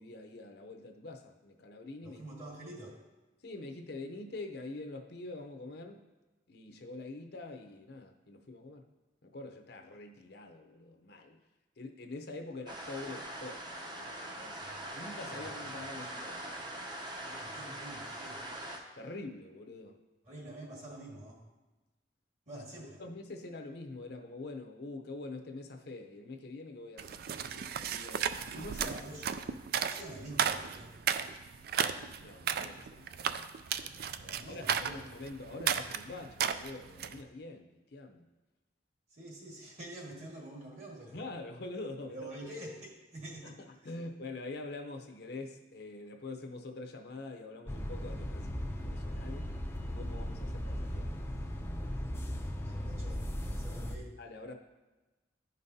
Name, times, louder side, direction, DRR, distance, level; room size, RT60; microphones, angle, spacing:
voice 1, 0.0-2.2 3.4-6.0 6.5-8.9 9.2-11.4 11.8-14.6 14.9-16.4 17.1-17.2 17.7-17.8 18.9-20.0 22.5-22.6 23.0-28.3 28.6-29.0 32.2-38.3 41.1-42.5 43.4-49.4 49.8-52.0 54.2-54.5, left 2 dB, 60° left, 4 dB, 0.7 m, -45 dB
voice 2, 2.0-3.0 14.5-15.0 15.3-15.5 15.8-15.9 17.3-18.5 20.3-21.4 22.5-23.0 28.8-29.3 29.7-30.9 34.2-35.0 39.1-41.2 42.1-43.6 52.6-54.1, right 1 dB, 40° right, -2 dB, 1.8 m, -47 dB
sound 1, 12.7-18.8, right 1 dB, 25° right, 0.8 m, -42 dB
sound 2, 27.0-37.2, right 8 dB, 55° right, 0.3 m, -34 dB
sound 3, 47.7-54.0, equal, 15° left, 0.5 m, -37 dB
12.0 x 5.3 x 2.7 m, 1.1 s
head